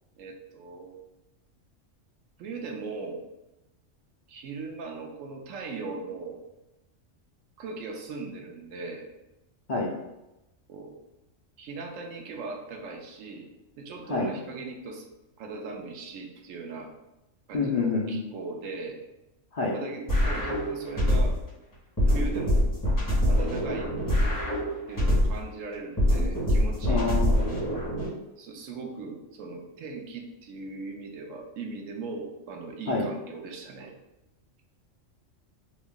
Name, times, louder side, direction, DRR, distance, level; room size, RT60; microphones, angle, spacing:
voice 1, 0.2-1.0 2.4-3.2 4.3-6.4 7.6-9.0 10.7-10.9 11.6-13.5 13.8-15.1 15.4-16.9 17.5-19.0 19.7-21.3 22.0-22.7 23.3-23.9 24.9-27.0 28.4-34.0, right 3 dB, 80° right, 2 dB, 1.0 m, -39 dB
voice 2, 17.5-18.2 19.5-19.7 26.9-27.4 32.9-33.1, left 3 dB, 80° left, -3 dB, 0.3 m, -27 dB
sound 1, 20.1-21.5 22.0-25.5 26.0-28.1, equal, 15° left, 1.0 m, -24 dB
2.7 x 2.6 x 3.6 m, 0.96 s
omnidirectional pair, 1.3 m